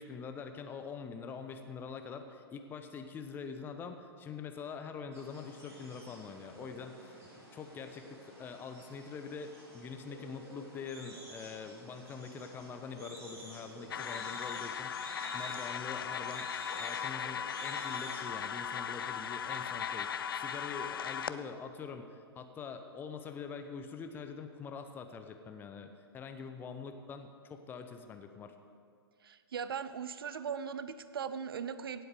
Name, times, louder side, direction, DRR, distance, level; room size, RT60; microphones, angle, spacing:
voice 1, 0.0-16.5 16.8-25.9 26.1-28.5, left 5 dB, 15° left, 7 dB, 0.8 m, -44 dB
sound 1, 5.1-18.5, right 1 dB, 20° right, 3.7 m, -50 dB
sound 2, 13.9-21.3, left 8 dB, 55° left, 0.5 m, -38 dB
voice 2, 29.2-32.0, right 7 dB, 60° right, 13 dB, 0.7 m, -39 dB
17.0 x 7.9 x 5.0 m, 2.2 s
figure-of-eight pair, 115°, 14 cm